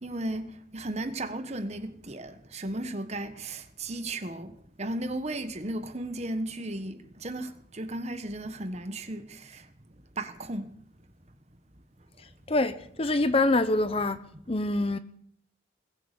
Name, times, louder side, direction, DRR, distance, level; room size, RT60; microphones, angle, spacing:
voice 1, 0.0-9.6 10.2-10.7, right 1 dB, 35° right, 1.2 m, -35 dB
voice 2, 12.5-14.2 14.5-15.0, left 2 dB, 30° left, 0.8 m, -25 dB
21.0 x 8.3 x 8.3 m
head